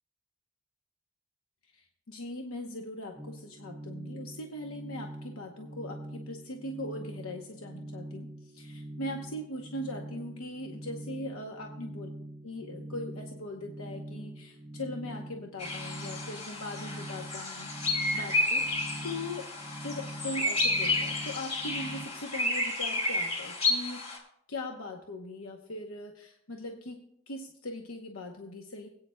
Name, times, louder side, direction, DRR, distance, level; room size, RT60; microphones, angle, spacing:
voice 1, 1.7-12.1 12.4-18.7 19.0-19.5 19.8-24.0 24.5-27.0 27.3-28.9, left 1 dB, 70° left, 3 dB, 0.9 m, -40 dB
sound 1, 3.2-22.1, right 1 dB, ahead, 1.5 m, -44 dB
sound 2, 15.6-24.2, left 2 dB, 30° left, 2.4 m, -31 dB
21.0 x 8.8 x 2.2 m, 0.72 s
head